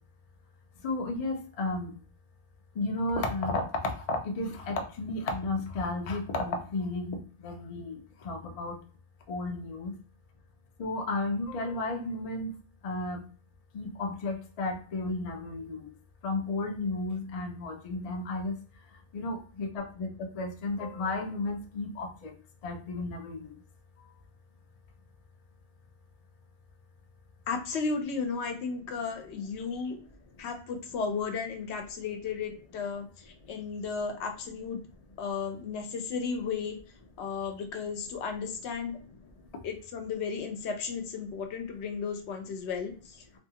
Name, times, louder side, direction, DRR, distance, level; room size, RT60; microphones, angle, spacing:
voice 1, 0.8-2.0 2.8-8.7 9.3-9.9 10.8-12.5 12.8-13.3 13.7-15.8 16.2-18.5 19.1-22.3 22.6-23.5, left 2 dB, 55° left, 3 dB, 0.4 m, -33 dB
voice 2, 27.5-30.0 30.4-33.1 33.5-34.8 35.2-36.8 37.2-39.0 39.6-42.9, left 5 dB, 75° left, 5 dB, 0.8 m, -34 dB
2.6 x 2.3 x 2.7 m, 0.40 s
omnidirectional pair, 1.2 m